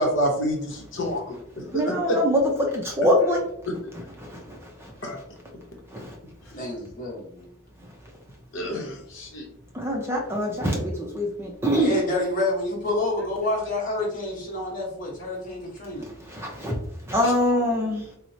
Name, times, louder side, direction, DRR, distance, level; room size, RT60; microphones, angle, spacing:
voice 1, 0.0-2.2 3.7-3.8 5.0-5.2 8.5-9.5 17.2-17.3, equal, 60° left, 0 dB, 0.8 m, -28 dB
voice 2, 1.7-2.4 2.7-3.4 4.2-4.6 5.9-6.1 9.7-12.0 16.3-16.7 17.1-18.0, equal, 10° right, -1 dB, 0.4 m, -24 dB
voice 3, 6.5-7.5 11.8-16.1, left 2 dB, 40° left, -3 dB, 1.1 m, -28 dB
4.3 x 2.1 x 2.6 m, 0.69 s
head